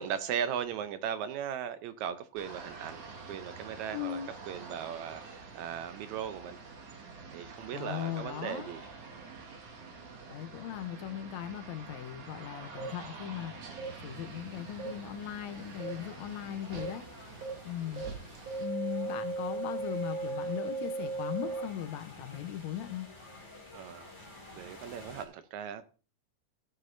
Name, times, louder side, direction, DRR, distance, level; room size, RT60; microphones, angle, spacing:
voice 1, 0.0-6.6 7.3-8.8 23.7-24.3 24.5-25.8, right 8 dB, 75° right, 1.9 m, -38 dB
sound 1, 2.4-18.7, right 4 dB, 55° right, 2.5 m, -47 dB
voice 2, 3.9-4.3 7.7-8.7 10.3-13.7 14.0-17.1 17.6-18.0 18.6-23.1, left 10 dB, 70° left, 1.9 m, -38 dB
sound 2, 12.8-12.9 13.8-13.9 14.8-14.9 15.8-15.9 16.8-16.9 17.4-17.5 18.0-18.1 18.5-21.6, right 3 dB, 25° right, 4.8 m, -36 dB
sound 3, 13.4-25.2, left 2 dB, 10° left, 1.5 m, -52 dB
15.5 x 8.6 x 2.6 m
omnidirectional pair, 3.6 m